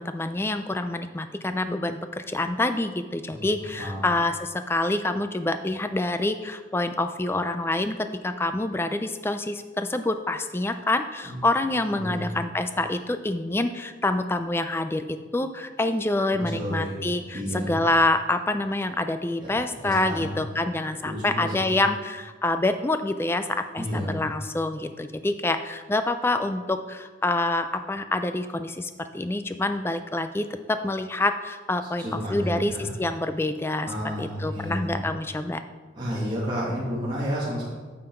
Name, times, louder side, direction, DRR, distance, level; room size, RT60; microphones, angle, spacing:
voice 1, 0.0-33.9 34.2-35.6, left 2 dB, 10° left, 9 dB, 0.3 m, -27 dB
voice 2, 11.9-12.4 16.3-17.0 17.3-17.8 19.8-20.3 21.0-21.8 23.8-24.2 32.0-32.9 33.9-35.0 36.0-37.7, equal, 25° right, -9 dB, 2.0 m, -31 dB
9.0 x 5.7 x 4.4 m, 1.4 s
head